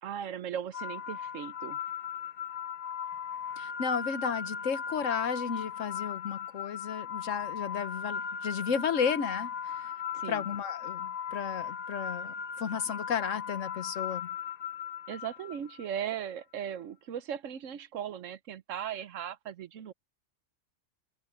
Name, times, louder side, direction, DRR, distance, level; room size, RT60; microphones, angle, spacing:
voice 1, 0.0-1.8 10.1-10.4 15.1-19.9, right 9 dB, 90° right, 1.2 m, -38 dB
sound 1, 0.7-15.9, left 7 dB, 55° left, 0.9 m, -37 dB
voice 2, 3.6-9.9 10.3-14.3, left 7 dB, 85° left, 1.4 m, -33 dB
omnidirectional pair, 1.3 m